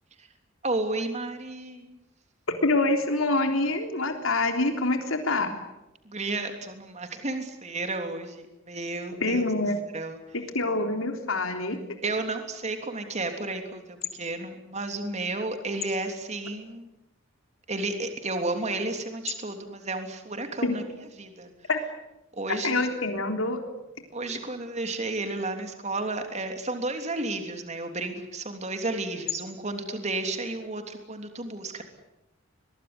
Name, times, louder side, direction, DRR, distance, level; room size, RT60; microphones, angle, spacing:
voice 1, 0.6-2.0 6.0-9.4 9.9-10.2 12.0-16.9 17.7-20.8 21.2-21.5 22.3-22.8 24.1-31.8, right 2 dB, 35° right, 6 dB, 3.2 m, -32 dB
voice 2, 2.6-5.5 9.2-9.8 10.5-11.8 20.6-20.8 21.7-21.8 22.5-23.6, left 2 dB, 90° left, 5 dB, 3.6 m, -25 dB
23.0 x 22.5 x 9.7 m, 0.92 s
head